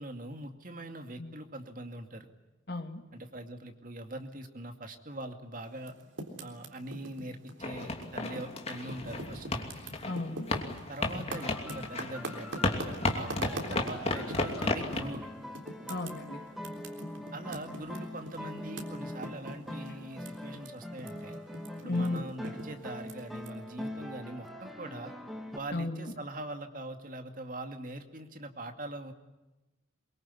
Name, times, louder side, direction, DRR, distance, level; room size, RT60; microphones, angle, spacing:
voice 1, 0.0-2.3 3.1-6.0 6.4-9.7 10.9-15.3 17.3-21.4 21.8-25.1 25.5-29.1, right 1 dB, 45° right, 6 dB, 2.3 m, -42 dB
voice 2, 2.7-3.0 10.0-10.5 15.9-16.4 21.8-22.2 25.7-26.1, left 2 dB, 55° left, 6 dB, 2.5 m, -34 dB
Typing, 5.8-8.6 8.8-14.7 15.1-15.3 15.6-20.7 20.9-23.5, right 2 dB, 75° right, 3.8 m, -43 dB
sound 1, 7.6-15.1, left 2 dB, 30° left, 2.8 m, -34 dB
sound 2, 11.3-25.6, left 1 dB, ahead, 2.4 m, -43 dB
23.5 x 23.0 x 9.8 m, 1.1 s
head